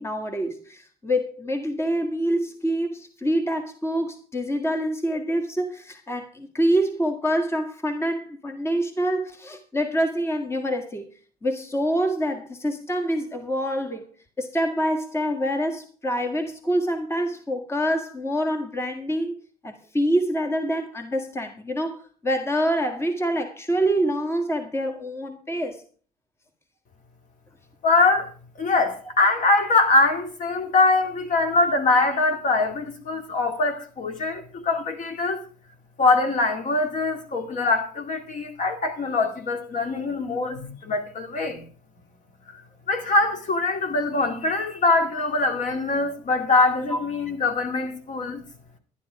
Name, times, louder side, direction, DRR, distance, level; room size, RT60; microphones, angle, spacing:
voice 1, 0.0-11.1 11.4-14.1 14.4-19.4 19.6-25.8 46.9-47.0, equal, 15° left, 1.7 m, -26 dB
voice 2, 27.8-28.3 28.6-35.4 36.0-41.6 42.9-48.4, left 3 dB, 50° left, 2.3 m, -23 dB
11.0 x 10.5 x 4.8 m
cardioid pair, 110°, 17 cm